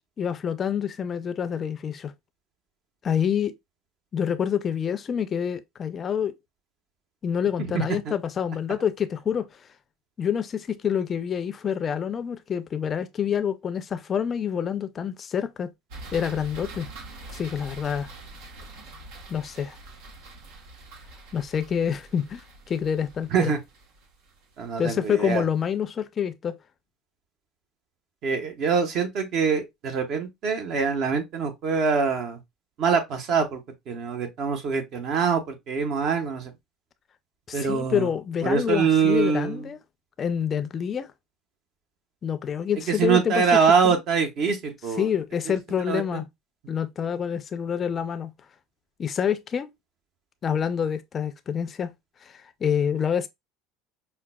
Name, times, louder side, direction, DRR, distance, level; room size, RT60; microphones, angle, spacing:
voice 1, 0.2-2.1 3.0-3.5 4.1-6.3 7.2-9.6 10.2-15.7 16.1-16.9 17.3-18.1 19.3-19.8 21.3-22.4 22.7-23.5 24.8-26.6 37.5-39.8 40.2-41.1 42.2-44.0 45.0-46.3 46.7-48.3 49.0-49.7 50.4-51.9 52.2-53.3, left 8 dB, 35° left, 0.4 m, -27 dB
voice 2, 7.6-8.1 23.3-23.6 24.6-25.4 28.2-32.4 32.8-33.6 33.9-36.5 37.5-38.1 38.4-39.7 42.9-45.1 45.5-45.6 45.9-46.2, right 6 dB, 55° right, 1.0 m, -24 dB
sound 1, 15.9-25.0, right 2 dB, 85° right, 1.1 m, -44 dB
5.6 x 2.3 x 2.2 m
supercardioid pair, 110°, 0 cm